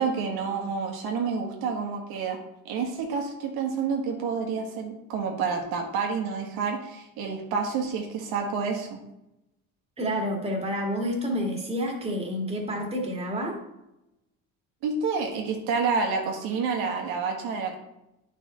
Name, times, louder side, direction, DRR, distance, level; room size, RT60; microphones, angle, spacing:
voice 1, 0.0-2.4 2.7-9.0 14.8-17.8, right 5 dB, 90° right, 2 dB, 1.7 m, -29 dB
voice 2, 10.0-13.6, equal, 15° right, 0 dB, 1.9 m, -29 dB
9.8 x 5.5 x 4.3 m, 0.90 s
cardioid pair, 140°, 36 cm